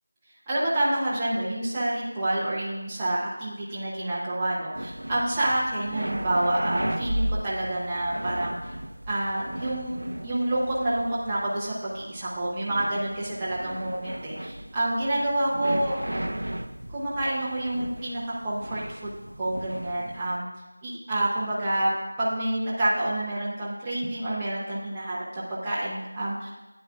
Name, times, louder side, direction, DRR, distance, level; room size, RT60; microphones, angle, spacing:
voice 1, 0.5-8.5 9.1-16.0 16.9-20.5 20.8-21.9 22.2-26.5, right 1 dB, 5° right, -9 dB, 0.7 m, -28 dB
sound 1, 4.7-20.4, right 1 dB, 75° right, 0.6 m, -35 dB
12.5 x 9.7 x 2.4 m, 1.1 s
figure-of-eight pair, 180°, 0 cm